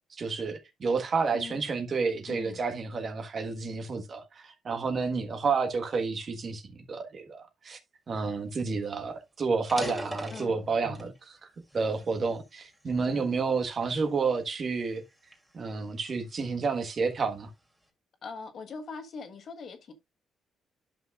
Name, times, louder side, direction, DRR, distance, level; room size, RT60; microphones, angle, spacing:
voice 1, 0.1-7.8 8.1-11.4 11.7-15.0 15.5-17.5, right 4 dB, 45° right, 1.4 m, -30 dB
voice 2, 2.3-2.6 10.3-10.6 13.0-13.4 18.2-19.9, left 5 dB, 55° left, 1.3 m, -42 dB
sound 1, 8.5-8.6 8.9-9.0 9.5-11.2 11.7-13.0 13.6-13.8 14.5-16.5, equal, 5° right, 3.0 m, -40 dB
11.0 x 5.8 x 2.4 m
cardioid pair, 90°, 0 cm